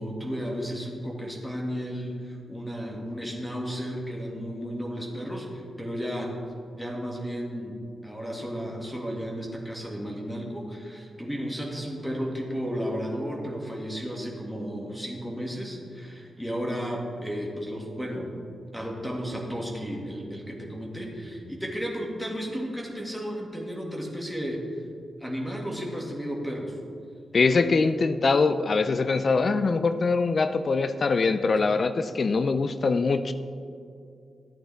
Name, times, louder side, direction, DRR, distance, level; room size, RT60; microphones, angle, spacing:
voice 1, 0.0-6.4 6.7-18.3 18.7-24.6 25.2-26.7 31.6-31.8, equal, 5° left, -1 dB, 2.1 m, -33 dB
voice 2, 27.3-33.3, left 4 dB, 55° left, 11 dB, 0.4 m, -23 dB
13.5 x 8.7 x 3.5 m, 2.4 s
supercardioid pair, 45°, 0 cm